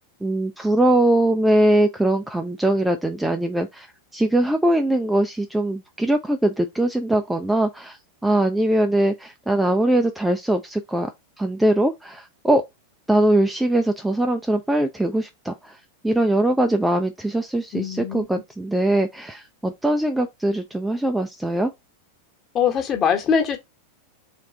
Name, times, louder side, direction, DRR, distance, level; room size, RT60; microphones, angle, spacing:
voice 1, 0.2-3.9 4.1-8.0 8.2-11.1 11.4-12.6 13.1-15.8 16.0-21.7, right 1 dB, 5° right, 0.4 m, -21 dB
voice 2, 17.7-18.2 22.5-23.6, left 7 dB, 30° left, 1.3 m, -22 dB
3.5 x 3.2 x 3.8 m
figure-of-eight pair, 90°, 0 cm